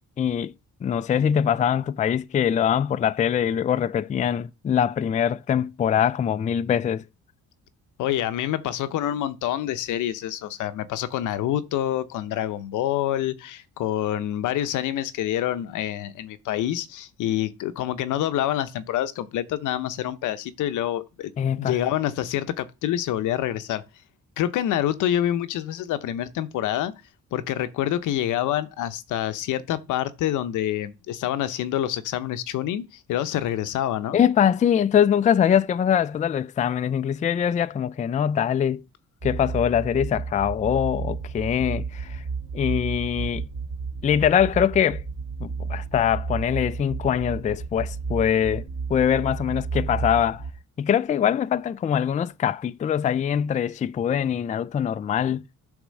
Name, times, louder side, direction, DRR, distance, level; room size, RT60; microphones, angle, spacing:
voice 1, 0.2-0.5 0.8-7.0 21.4-21.8 34.1-38.8 39.2-42.2 42.5-43.4 44.0-45.0 45.4-48.6 48.9-50.4 50.8-55.4, left 9 dB, 25° left, 0.3 m, -23 dB
voice 2, 8.0-21.3 21.6-23.8 24.4-26.9 27.3-34.2, left 12 dB, 85° left, 0.7 m, -27 dB
sound 1, 39.2-50.5, right 5 dB, 35° right, 1.3 m, -32 dB
8.2 x 3.6 x 6.4 m
cardioid pair, 90°, 30 cm